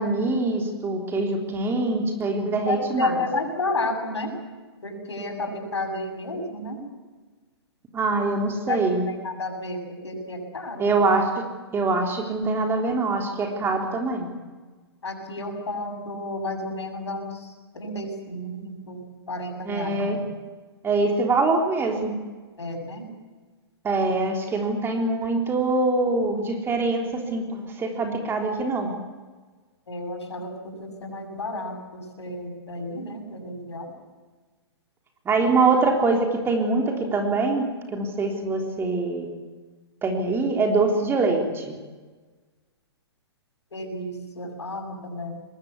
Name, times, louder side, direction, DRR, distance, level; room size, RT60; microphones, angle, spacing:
voice 1, 0.0-3.1 7.9-9.0 10.8-11.4 11.7-14.3 19.6-20.2 20.8-22.2 23.8-28.9 35.3-39.3 40.0-41.8, right 3 dB, 15° right, 2 dB, 3.5 m, -24 dB
voice 2, 2.7-4.3 4.8-6.8 8.7-10.9 15.0-19.0 19.3-20.2 22.6-23.1 29.9-33.9 43.7-45.4, left 2 dB, 80° left, 4 dB, 7.5 m, -31 dB
23.5 x 20.5 x 8.3 m, 1.4 s
hypercardioid pair, 125°, 14 cm